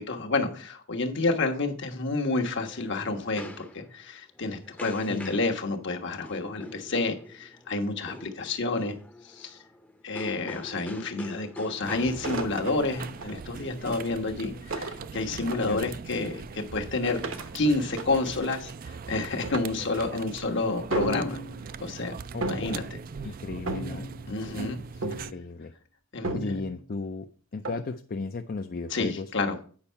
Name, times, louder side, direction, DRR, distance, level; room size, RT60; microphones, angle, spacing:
voice 1, 0.0-8.9 9.2-9.6 10.0-17.2 17.5-21.4 21.8-22.1 22.4-22.8 24.3-24.8 26.1-26.6 28.9-29.5, left 3 dB, 60° left, 3 dB, 1.3 m, -29 dB
sound 1, 2.4-14.7, left 1 dB, 10° left, 0.7 m, -46 dB
sound 2, 11.8-25.3, right 5 dB, 45° right, 0.4 m, -41 dB
sound 3, 12.2-13.3 14.7-15.7 17.1-18.7 19.4-19.6 20.0-20.3 20.9-21.7 22.4-22.9 23.7-24.3 25.0-25.4 26.2-26.8 27.6-27.9, right 2 dB, 75° right, 1.1 m, -34 dB
voice 2, 22.3-22.8 23.2-24.1 25.0-25.7 26.3-27.3 27.5-29.3, left 3 dB, 45° left, 6 dB, 0.5 m, -35 dB
8.7 x 5.5 x 5.6 m, 0.43 s
head